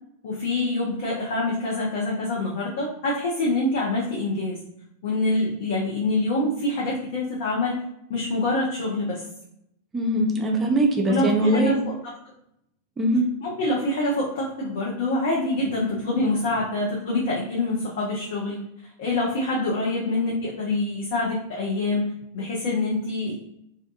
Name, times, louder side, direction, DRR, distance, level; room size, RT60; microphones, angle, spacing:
voice 1, 0.2-4.6 5.0-7.8 8.1-9.2 11.1-11.8 12.0-12.3 13.4-18.6 19.0-23.4, left 2 dB, 55° left, -4 dB, 0.5 m, -26 dB
voice 2, 9.9-11.9 13.0-13.2, right 1 dB, 20° right, 1 dB, 0.4 m, -21 dB
2.4 x 2.2 x 2.6 m, 0.77 s
figure-of-eight pair, 90°, 0 cm